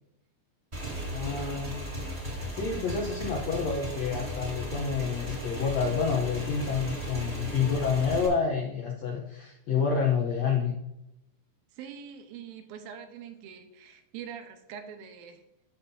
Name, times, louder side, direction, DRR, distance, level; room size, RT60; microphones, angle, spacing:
Motorcycle / Engine, 0.7-8.3, equal, 20° right, 2.1 m, -36 dB
voice 1, 1.1-1.7 2.5-10.8, left 6 dB, 75° left, 1 dB, 1.5 m, -28 dB
voice 2, 11.7-15.4, right 8 dB, 85° right, 6 dB, 2.6 m, -44 dB
13.0 x 5.6 x 2.7 m, 0.86 s
omnidirectional pair, 4.2 m